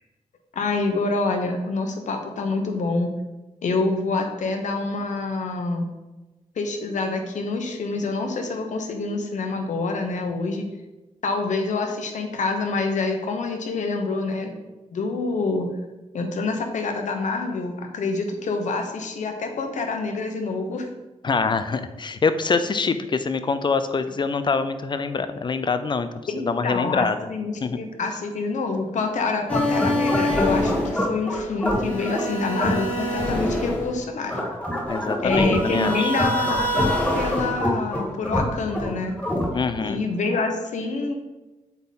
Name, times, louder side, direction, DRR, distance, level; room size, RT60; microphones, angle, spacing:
voice 1, 0.5-3.2 3.6-5.9 6.5-10.7 11.2-14.6 14.9-15.8 16.1-20.9 26.3-34.4 35.2-39.1 39.8-41.1, left 3 dB, 75° left, 4 dB, 1.1 m, -26 dB
voice 2, 21.2-26.1 26.4-27.3 27.6-27.8 34.9-36.1 39.5-40.0, left 4 dB, 40° left, 11 dB, 0.5 m, -25 dB
sound 1, 29.5-39.9, left 1 dB, 10° left, 1.6 m, -24 dB
8.0 x 3.7 x 4.2 m, 1.1 s
cardioid pair, 80°, 13 cm